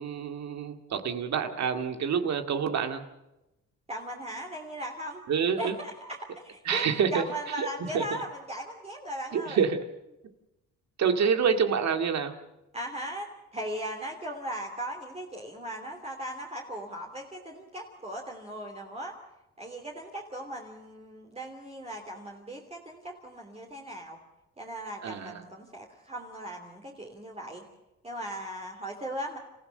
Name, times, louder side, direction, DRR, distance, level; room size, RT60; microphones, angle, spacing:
voice 1, 0.0-3.0 5.3-5.7 6.7-7.1 7.9-8.0 9.3-9.8 11.0-12.3 25.0-25.3, right 6 dB, 65° right, 7 dB, 2.2 m, -27 dB
voice 2, 3.9-5.2 5.6-9.6 12.7-19.2 19.6-24.2 24.6-27.6 28.0-29.4, right 1 dB, 20° right, 0 dB, 3.0 m, -38 dB
27.5 x 15.0 x 6.7 m, 0.94 s
cardioid pair, 90°, 30 cm